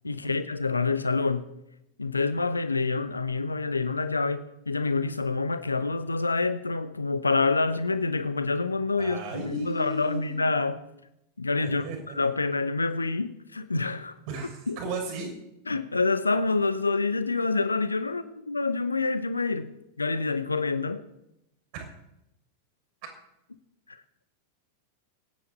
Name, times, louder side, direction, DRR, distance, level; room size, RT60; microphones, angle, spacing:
voice 1, 0.0-1.5 2.0-10.8 11.4-14.1 14.7-14.8 15.7-21.0 23.9-24.0, left 3 dB, 80° left, 0.9 m, -27 dB
voice 2, 9.0-10.5 11.6-12.0 12.2-12.3 14.3-15.3 21.7-21.8, right 3 dB, 50° right, 6.3 m, -35 dB
24.0 x 9.5 x 4.2 m
figure-of-eight pair, 90°, 0 cm